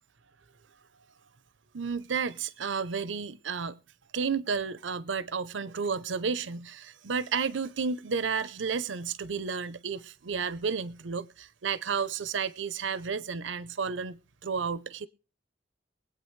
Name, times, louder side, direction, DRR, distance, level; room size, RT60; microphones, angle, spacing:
voice 1, 1.7-3.8 4.1-15.1, right 5 dB, 90° right, 0.7 m, -32 dB
23.5 x 8.6 x 3.2 m
head